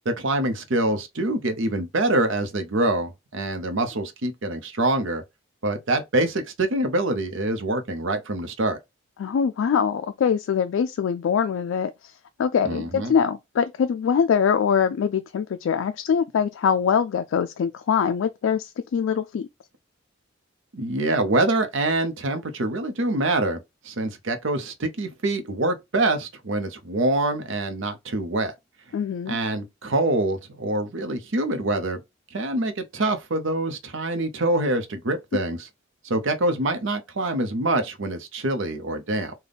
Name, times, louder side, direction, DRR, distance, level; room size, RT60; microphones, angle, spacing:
voice 1, 0.0-5.2 5.6-8.8 12.6-13.1 20.7-23.6 23.8-28.5 29.3-32.0 32.3-35.6 36.0-39.3, right 2 dB, 70° right, 0.7 m, -25 dB
voice 2, 9.2-12.1 12.4-19.5 28.9-29.4, left 7 dB, 70° left, 0.3 m, -23 dB
3.4 x 2.2 x 3.9 m
head